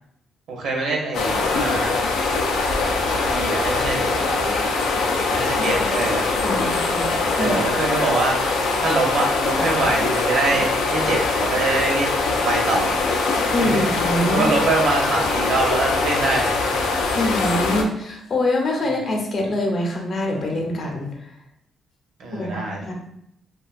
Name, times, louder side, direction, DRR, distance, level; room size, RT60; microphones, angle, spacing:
voice 1, 0.5-2.0 3.1-4.7 5.3-6.2 7.3-8.4 8.8-12.1 12.4-13.0 13.6-13.9 14.2-16.5 22.2-22.9, right 3 dB, 75° right, 0 dB, 0.6 m, -24 dB
sound 1, 1.1-17.8, left 3 dB, 85° left, 0.3 m, -22 dB
voice 2, 5.6-5.9 6.4-7.6 13.5-14.5 17.1-21.3 22.3-22.9, left 1 dB, 50° left, 0 dB, 0.7 m, -25 dB
2.5 x 2.3 x 2.4 m, 0.74 s
cardioid pair, 90°, 0 cm